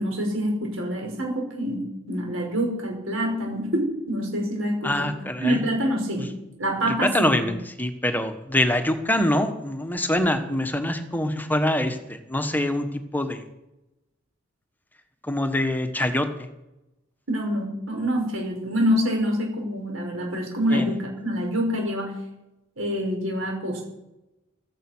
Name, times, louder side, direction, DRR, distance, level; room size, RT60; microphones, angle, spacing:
voice 1, 0.0-5.1 5.4-6.3 6.6-7.6 17.3-22.2 22.8-23.9, equal, 85° right, 1 dB, 6.4 m, -26 dB
voice 2, 4.8-5.6 7.0-12.9 13.1-13.4 15.2-16.5 20.7-20.9, left 1 dB, 10° left, 7 dB, 1.3 m, -24 dB
16.0 x 14.0 x 6.3 m, 0.93 s
head